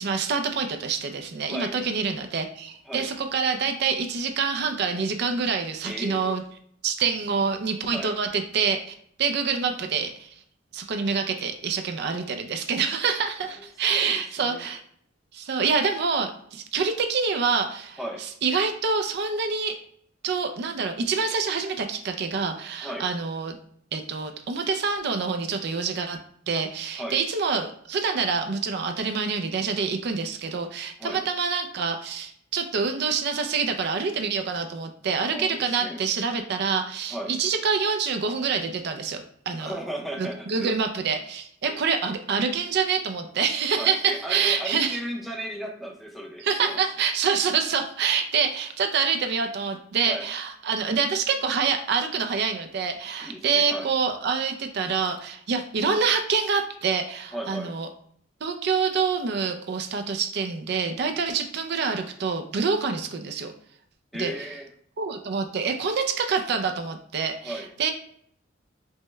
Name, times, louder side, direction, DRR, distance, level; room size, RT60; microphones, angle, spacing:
voice 1, 0.0-6.4 6.8-8.8 9.2-10.3 10.7-14.8 15.3-18.0 18.4-19.8 20.2-23.6 23.9-26.2 26.5-39.7 40.2-45.0 46.4-57.9 58.4-63.5 64.2-64.3 65.0-67.9, right 5 dB, 60° right, 6 dB, 0.4 m, -26 dB
voice 2, 1.4-1.8 2.9-3.1 5.8-6.3 7.9-8.1 13.6-14.7 18.0-18.2 22.8-23.1 27.0-27.2 31.0-31.2 35.3-36.0 37.1-37.3 39.6-40.7 43.8-46.8 50.0-50.3 53.2-53.9 57.3-57.7 64.1-64.7 67.4-67.7, right 1 dB, ahead, -1 dB, 0.6 m, -35 dB
5.3 x 2.1 x 3.2 m, 0.65 s
head